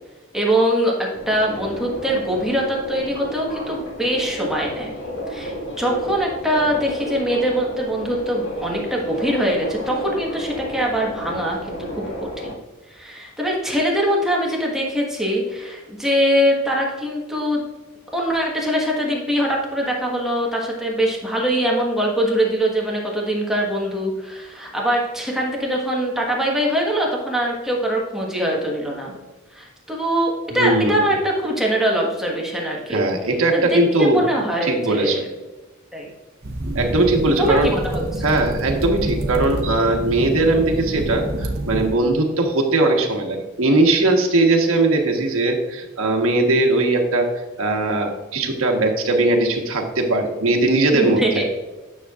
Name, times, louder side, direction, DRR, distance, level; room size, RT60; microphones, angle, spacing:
voice 1, 0.3-4.9 5.3-12.6 12.9-17.6 18.1-29.1 29.5-33.0 33.5-35.3 35.9-36.1 37.4-38.2 50.9-51.4, equal, ahead, -3 dB, 1.4 m, -22 dB
Subway metro underground, 1.1-12.5, left 1 dB, 65° left, 1.9 m, -32 dB
voice 2, 30.5-31.1 32.9-34.3 34.6-35.3 36.7-37.7 38.2-51.4, right 2 dB, 75° right, 2 dB, 1.3 m, -19 dB
sound 1, 36.4-42.0, right 1 dB, 50° right, 1.0 m, -27 dB
10.0 x 6.6 x 2.4 m, 1.2 s
head